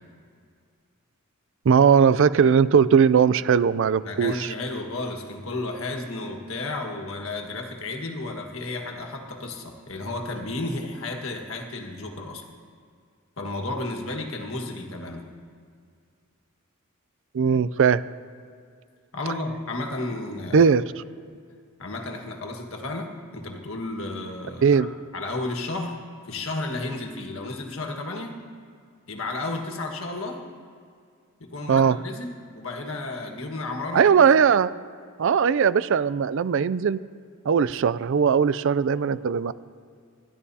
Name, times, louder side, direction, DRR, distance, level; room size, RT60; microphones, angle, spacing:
voice 1, 1.7-4.5 17.3-18.0 20.5-20.8 24.6-24.9 31.7-32.0 33.9-34.7 35.2-37.0 37.5-39.5, right 6 dB, 60° right, 16 dB, 0.4 m, -19 dB
voice 2, 4.0-12.4 13.4-15.2 19.1-20.7 21.8-26.0 26.3-28.4 29.1-30.4 31.4-34.2, left 2 dB, 65° left, 3 dB, 1.6 m, -32 dB
27.0 x 12.5 x 2.8 m, 2.2 s
head